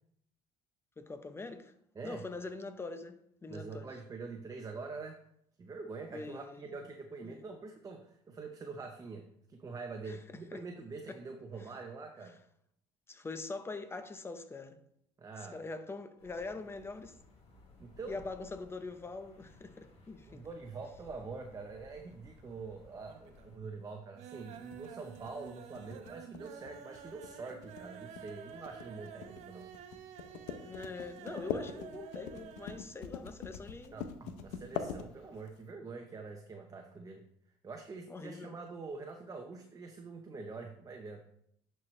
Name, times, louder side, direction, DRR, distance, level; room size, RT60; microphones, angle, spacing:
voice 1, 1.0-1.7 2.0-3.9 6.1-6.7 7.2-7.4 10.1-10.2 10.5-10.6 11.1-11.2 13.1-14.8 15.5-17.1 18.1-20.4 30.6-34.0 38.1-38.5, left 3 dB, 20° left, 0.9 m, -43 dB
voice 2, 1.9-2.3 3.5-5.2 5.6-12.4 15.2-15.6 17.8-18.2 20.3-29.7 33.9-37.2 37.6-41.3, right 4 dB, 30° right, 0.9 m, -45 dB
sound 1, 16.2-23.6, left 3 dB, 55° left, 2.5 m, -59 dB
sound 2, 22.1-22.7 23.0-23.6 23.9-32.9 33.2-33.3 33.6-33.7, right 8 dB, 70° right, 0.8 m, -50 dB
sound 3, 24.5-35.6, left 7 dB, 80° left, 0.7 m, -43 dB
10.5 x 4.6 x 3.3 m
supercardioid pair, 85°, 12 cm